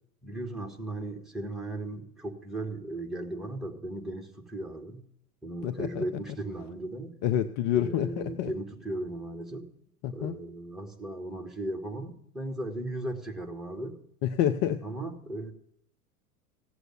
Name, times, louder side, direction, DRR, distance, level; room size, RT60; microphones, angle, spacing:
voice 1, 0.2-5.0 5.4-7.1 7.7-9.7 10.1-14.0 14.8-15.5, right 1 dB, ahead, 2 dB, 2.1 m, -36 dB
voice 2, 5.6-6.0 7.2-8.5 10.0-10.3 14.2-14.8, left 10 dB, 30° left, 10 dB, 0.6 m, -28 dB
16.5 x 7.9 x 9.2 m, 0.70 s
figure-of-eight pair, 90°, 45 cm